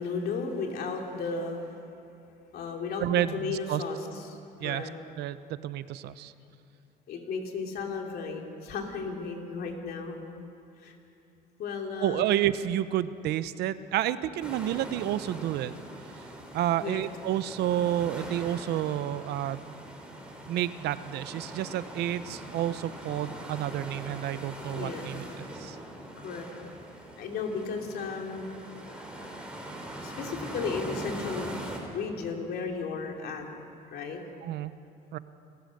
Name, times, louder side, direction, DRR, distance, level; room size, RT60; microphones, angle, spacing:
voice 1, 0.0-1.8 2.5-4.9 7.1-10.2 10.8-10.9 11.6-12.3 16.8-17.0 24.7-25.1 26.2-26.5 27.2-28.5 28.9-29.2 30.0-33.5 33.9-34.2, left 4 dB, 65° left, 2 dB, 3.0 m, -34 dB
voice 2, 3.0-3.8 4.6-4.9 5.2-5.4 5.6-6.3 12.0-15.7 16.5-19.8 20.5-25.2 25.6-25.8 34.4-34.7 35.1-35.2, right 12 dB, 75° right, 15 dB, 0.7 m, -30 dB
sound 1, 14.4-31.8, right 1 dB, 5° right, 3.9 m, -42 dB
29.0 x 14.5 x 6.6 m, 2.7 s
cardioid pair, 110°, 17 cm